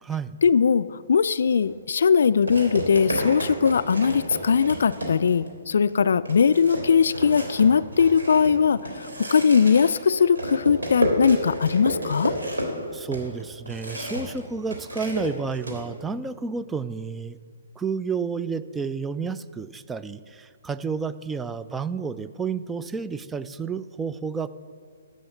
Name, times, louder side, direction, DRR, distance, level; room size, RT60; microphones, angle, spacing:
voice 1, 0.4-12.3, left 6 dB, 70° left, 15 dB, 0.3 m, -20 dB
sound 1, 1.5-1.7 2.5-5.5 5.9-6.0 6.3-14.4 14.7-15.8, right 1 dB, 85° right, 3.1 m, -31 dB
voice 2, 12.9-17.4 17.8-24.5, right 5 dB, 10° right, 14 dB, 0.4 m, -30 dB
11.5 x 6.4 x 7.8 m, 2.1 s
hypercardioid pair, 140°, 0 cm